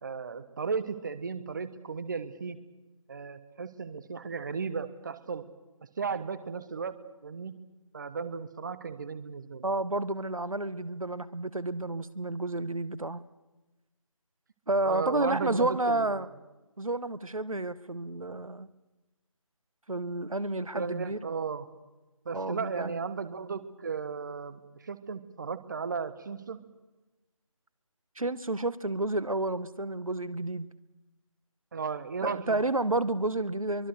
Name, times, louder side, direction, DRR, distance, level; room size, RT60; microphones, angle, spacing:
voice 1, 0.0-2.6 3.1-5.5 6.0-7.0 7.2-7.5 7.9-9.6 14.8-16.3 20.7-21.7 22.2-26.6 31.7-32.6, right 5 dB, 35° right, 13 dB, 1.2 m, -35 dB
voice 2, 9.6-13.2 14.7-16.3 16.8-18.7 19.9-21.2 22.3-23.0 28.2-30.7 32.2-33.9, right 2 dB, 80° right, 16 dB, 1.1 m, -30 dB
23.5 x 23.5 x 6.7 m, 1.1 s
figure-of-eight pair, 155°, 17 cm